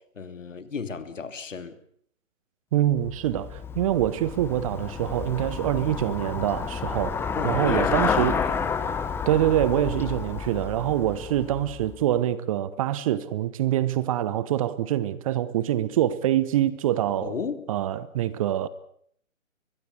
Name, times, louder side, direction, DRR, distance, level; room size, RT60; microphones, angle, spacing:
voice 1, 0.0-1.8 7.3-8.1 8.4-8.7 17.2-17.7, left 5 dB, 65° left, 3.0 m, -34 dB
voice 2, 2.7-8.4 9.3-17.3 17.7-18.7, right 12 dB, 25° right, 1.0 m, -25 dB
Traffic noise roadway noise / Bicycle, 2.9-12.1, left 6 dB, 5° left, 1.1 m, -30 dB
23.0 x 21.5 x 8.2 m
figure-of-eight pair, 135°, 40 cm